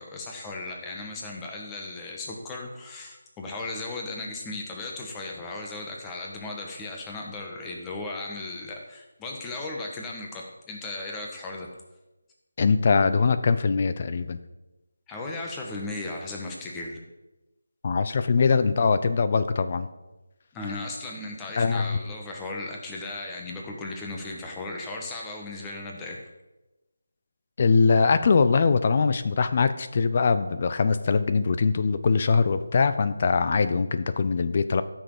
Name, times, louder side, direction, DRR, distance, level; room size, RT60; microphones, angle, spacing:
voice 1, 0.0-11.7 15.1-17.0 20.5-26.2, left 2 dB, 10° left, 0 dB, 1.5 m, -36 dB
voice 2, 12.6-14.4 17.8-19.9 21.6-22.0 27.6-34.8, left 4 dB, 40° left, 11 dB, 0.7 m, -22 dB
14.0 x 6.4 x 5.0 m, 1.1 s
figure-of-eight pair, 160°, 0 cm